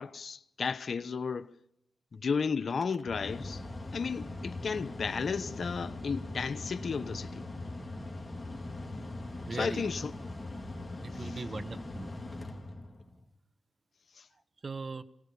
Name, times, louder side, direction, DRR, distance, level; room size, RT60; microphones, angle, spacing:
voice 1, 0.0-1.6 2.1-3.6 3.9-7.5 9.5-10.1 11.1-11.4 14.2-14.3, left 5 dB, 65° left, 1.0 m, -33 dB
Mechanical fan, 2.7-13.2, left 2 dB, 30° left, 3.5 m, -41 dB
voice 2, 9.5-9.9 11.0-12.1 14.6-15.0, right 3 dB, 50° right, 1.6 m, -39 dB
26.5 x 18.5 x 6.9 m
cardioid pair, 50°, 0 cm